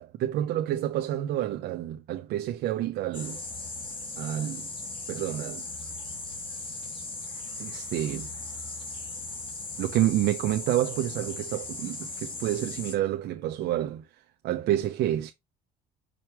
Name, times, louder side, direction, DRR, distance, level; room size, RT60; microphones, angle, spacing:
voice 1, 0.0-3.4 4.2-4.7 5.1-5.6 7.6-8.3 9.8-14.0 14.4-15.3, right 12 dB, 75° right, 0.8 m, -29 dB
sound 1, 3.1-13.0, left 3 dB, 30° left, 2.7 m, -38 dB
5.8 x 5.2 x 3.1 m
cardioid pair, 110°, 17 cm